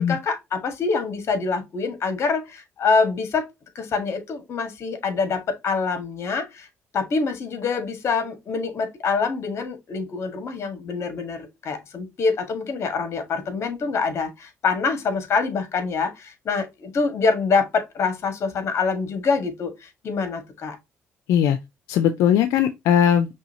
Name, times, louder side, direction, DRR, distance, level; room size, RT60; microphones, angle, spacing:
voice 1, 0.0-3.5 3.7-6.7 6.9-20.8, left 4 dB, 55° left, 1.6 m, -25 dB
voice 2, 21.9-23.4, left 9 dB, 90° left, 0.5 m, -19 dB
5.5 x 3.2 x 2.8 m
cardioid pair, 85°, 5 cm